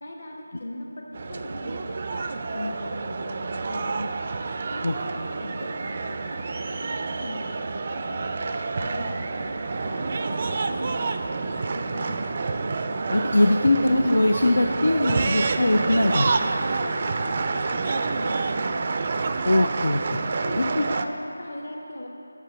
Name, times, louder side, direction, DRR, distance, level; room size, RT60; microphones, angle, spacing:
voice 1, 0.0-4.1 4.7-8.4 8.8-12.4 16.6-18.6 20.3-22.1, left 1 dB, 60° left, -1 dB, 1.6 m, -39 dB
sound 1, 1.1-21.1, right 4 dB, 30° right, 0.3 m, -28 dB
voice 2, 13.1-16.3 19.4-20.0 20.6-20.8, left 1 dB, 85° left, 2 dB, 0.6 m, -21 dB
7.3 x 6.0 x 7.7 m, 2.8 s
figure-of-eight pair, 175°, 0 cm